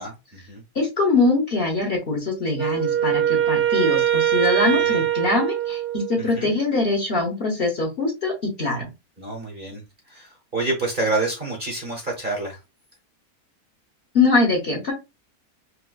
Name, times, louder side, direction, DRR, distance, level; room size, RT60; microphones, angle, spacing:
voice 1, 0.0-0.6 4.6-5.0 6.2-6.5 9.2-9.8 10.1-12.6, right 2 dB, 40° right, 1.0 m, -28 dB
voice 2, 0.7-8.9 14.1-14.9, left 3 dB, 40° left, 1.1 m, -23 dB
Wind instrument woodwind instrument, 2.6-6.5, right 10 dB, 90° right, 1.2 m, -22 dB
4.5 x 2.2 x 2.3 m
omnidirectional pair, 1.7 m